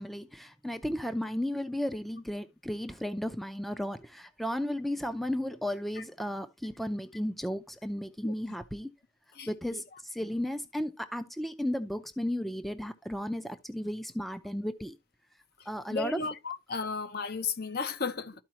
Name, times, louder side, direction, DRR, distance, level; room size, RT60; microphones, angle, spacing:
voice 1, 0.0-8.9 9.5-15.0 15.7-16.3, equal, ahead, 0.5 m, -34 dB
voice 2, 9.4-9.8 15.9-18.3, left 5 dB, 50° left, 0.8 m, -34 dB
13.0 x 4.8 x 2.9 m
head